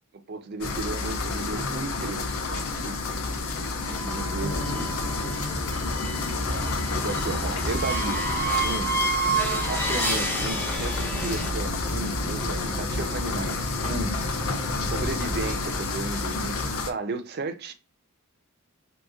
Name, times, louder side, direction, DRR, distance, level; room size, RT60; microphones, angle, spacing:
voice 1, 0.1-3.0 3.9-4.9 6.5-8.3 8.6-8.9 9.7-17.7, right 3 dB, 45° right, 0.4 m, -34 dB
sound 1, 0.6-16.9, left 3 dB, 65° left, 0.5 m, -30 dB
sound 2, 3.8-11.5, right 3 dB, 10° left, 0.5 m, -30 dB
sound 3, 4.4-15.6, equal, 40° left, 0.9 m, -35 dB
2.8 x 2.5 x 2.4 m
head